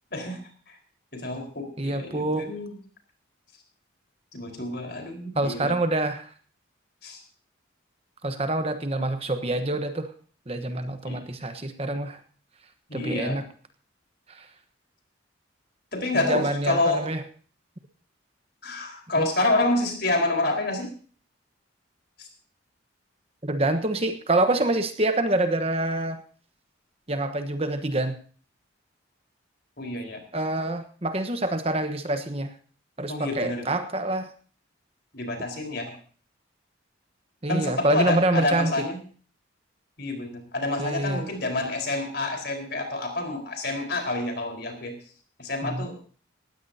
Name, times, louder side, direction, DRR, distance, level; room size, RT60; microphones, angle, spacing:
voice 1, 1.1-2.7 4.3-5.7 7.0-7.2 11.0-11.2 12.9-13.4 15.9-17.1 18.6-20.9 22.2-22.3 29.8-30.2 33.1-33.7 35.1-36.0 37.5-39.0 40.0-44.9 45.4-46.0, left 2 dB, 55° left, 4 dB, 4.7 m, -28 dB
voice 2, 1.8-2.5 5.3-6.3 8.2-10.1 10.5-12.2 12.9-13.4 14.4-14.5 16.1-17.2 19.2-19.3 23.4-26.2 27.1-28.2 30.3-32.5 33.0-34.3 37.4-38.7 40.8-41.3 45.6-45.9, right 2 dB, 30° right, 8 dB, 1.2 m, -26 dB
19.5 x 16.0 x 2.9 m, 0.41 s
head